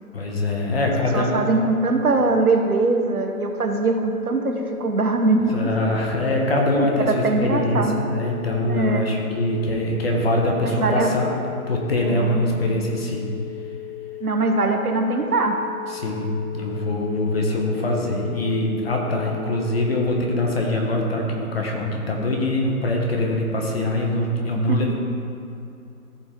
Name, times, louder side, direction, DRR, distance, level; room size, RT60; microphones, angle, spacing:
voice 1, 0.1-1.5 5.5-11.3 11.7-13.3 15.9-16.3 16.5-24.9, left 1 dB, 40° left, 0 dB, 1.5 m, -23 dB
voice 2, 1.1-5.6 6.8-8.0 8.7-9.1 10.6-11.1 12.0-12.6 14.2-15.6 24.7-24.9, right 3 dB, 75° right, 4 dB, 1.2 m, -22 dB
sound 1, 1.4-20.5, left 16 dB, 60° left, 0.6 m, -37 dB
14.0 x 5.4 x 3.7 m, 2.6 s
figure-of-eight pair, 160°, 45 cm